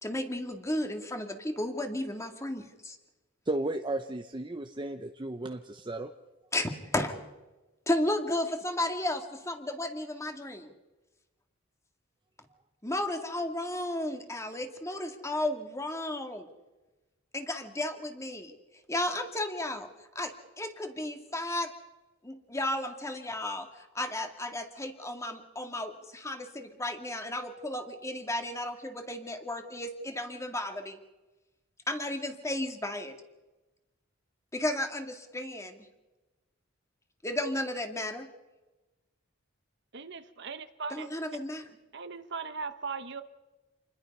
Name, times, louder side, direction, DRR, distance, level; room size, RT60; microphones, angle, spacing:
voice 1, 0.0-3.0 6.5-7.2 7.9-10.7 12.8-16.5 17.3-18.5 18.9-19.9 20.2-21.7 22.2-31.0 31.9-33.1 34.5-35.8 37.2-38.3 40.9-41.7, left 1 dB, 15° left, 5 dB, 2.1 m, -33 dB
voice 2, 3.5-6.1, right 2 dB, 25° right, 6 dB, 0.8 m, -34 dB
voice 3, 39.9-41.1 41.9-43.2, right 5 dB, 60° right, 10 dB, 1.1 m, -38 dB
28.0 x 21.0 x 5.5 m, 1.1 s
head